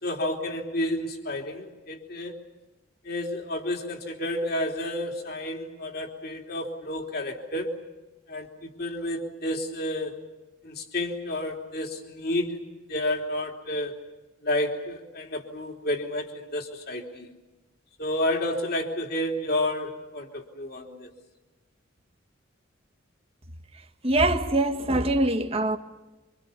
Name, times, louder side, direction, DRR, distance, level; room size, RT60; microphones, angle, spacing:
voice 1, 0.0-2.3 3.0-7.7 8.3-10.1 10.6-12.6 12.9-14.0 14.4-17.3 18.0-21.1, left 1 dB, 50° left, 3.3 m, -30 dB
voice 2, 24.0-25.8, right 1 dB, 30° right, 1.7 m, -23 dB
27.5 x 25.5 x 7.2 m
head